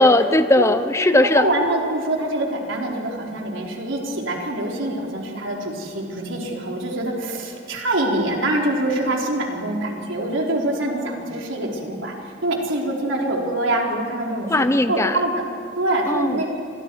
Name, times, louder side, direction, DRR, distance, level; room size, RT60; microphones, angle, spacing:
voice 1, 0.0-1.5 14.5-15.2 16.1-16.4, left 1 dB, 15° left, 10 dB, 0.8 m, -17 dB
voice 2, 1.1-12.1 12.4-14.5 14.9-15.4 15.8-16.5, right 1 dB, 85° right, -1 dB, 4.1 m, -24 dB
30.0 x 25.5 x 4.7 m, 2.5 s
head